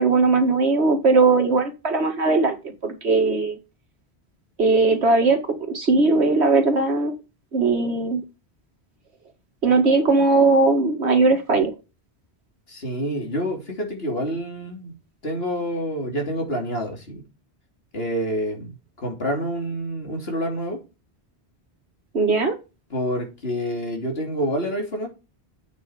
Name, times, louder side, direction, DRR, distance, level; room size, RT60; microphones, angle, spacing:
voice 1, 0.0-3.6 4.6-5.4 5.7-7.2 7.5-8.2 9.6-11.7 22.1-22.6, right 3 dB, 90° right, 2.3 m, -19 dB
voice 2, 12.7-14.9 15.2-17.2 17.9-18.7 19.0-20.8 22.9-25.1, equal, 70° left, 3.3 m, -27 dB
8.1 x 6.8 x 5.0 m
omnidirectional pair, 1.1 m